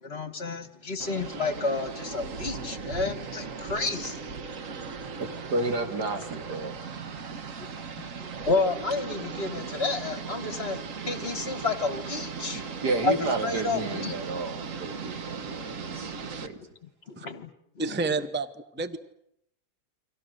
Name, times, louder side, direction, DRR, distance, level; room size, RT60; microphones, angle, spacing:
voice 1, 0.0-4.2 8.2-12.6 13.0-13.1 13.4-14.1 15.9-16.1 17.1-17.5 17.8-17.9, left 3 dB, 40° left, 11 dB, 1.5 m, -30 dB
sound 1, 1.0-16.5, right 5 dB, 55° right, 1.6 m, -37 dB
voice 2, 5.2-6.7 12.5-16.1 16.4-16.6, right 2 dB, 85° right, 5 dB, 3.1 m, -31 dB
voice 3, 17.8-19.0, right 3 dB, 10° right, 12 dB, 0.7 m, -30 dB
30.0 x 24.0 x 6.6 m, 0.77 s
omnidirectional pair, 1.7 m